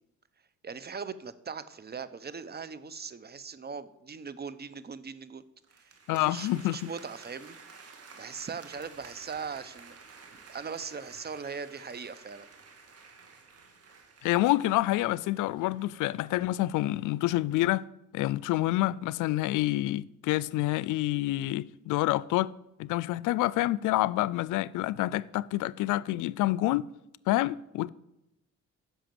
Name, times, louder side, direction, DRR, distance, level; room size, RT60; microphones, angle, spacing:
voice 1, 0.6-5.4 5.8-7.6 8.2-10.2 10.5-12.5, right 5 dB, 35° right, 0.8 m, -40 dB
sound 1, 5.6-16.0, right 4 dB, 50° right, 2.2 m, -52 dB
voice 2, 6.1-6.9 14.2-17.8 18.1-22.5 22.8-26.9 27.3-27.9, left 16 dB, 90° left, 0.5 m, -27 dB
10.5 x 6.5 x 7.7 m
cardioid pair, 90°, 30 cm